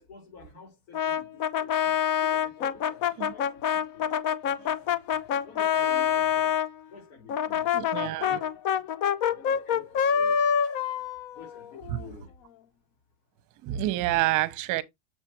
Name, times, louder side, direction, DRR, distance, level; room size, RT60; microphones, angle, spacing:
voice 1, 0.0-1.9 2.2-4.1 4.4-5.0 5.4-6.6 6.9-8.8 9.3-10.4 11.3-12.3, left 4 dB, 75° left, 4.6 m, -50 dB
Brass instrument, 0.9-6.7 7.3-12.1, left 8 dB, 45° left, 0.8 m, -26 dB
voice 2, 7.7-8.4 11.9-12.0 13.6-14.8, right 16 dB, 45° right, 0.9 m, -28 dB
7.4 x 6.5 x 3.0 m
supercardioid pair, 145°, 43 cm